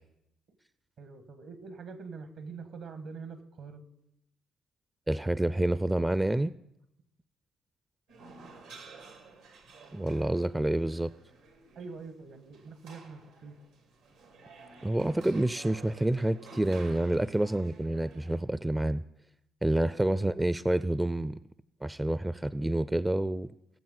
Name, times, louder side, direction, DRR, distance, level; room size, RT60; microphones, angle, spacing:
voice 1, 1.0-3.8 11.7-13.6, right 4 dB, 65° right, 9 dB, 1.6 m, -44 dB
voice 2, 5.1-6.5 9.9-11.1 14.8-19.0 19.6-21.4 21.8-23.5, right 1 dB, 15° right, 15 dB, 0.4 m, -28 dB
sound 1, 8.1-18.4, right 3 dB, 85° right, 2.2 m, -52 dB
20.0 x 7.3 x 4.0 m, 0.82 s
hypercardioid pair, 50°, 0 cm